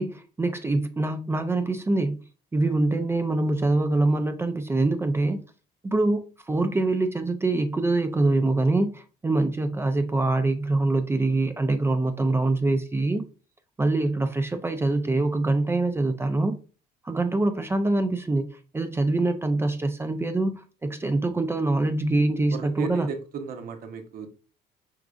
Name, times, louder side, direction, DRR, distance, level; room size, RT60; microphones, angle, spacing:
voice 1, 0.0-2.2 2.5-5.4 5.8-13.3 13.8-16.6 17.0-23.1, right 2 dB, 15° right, 0.4 m, -24 dB
voice 2, 22.5-24.3, right 5 dB, 60° right, 0.7 m, -35 dB
4.9 x 3.7 x 2.3 m
cardioid pair, 110°, 17 cm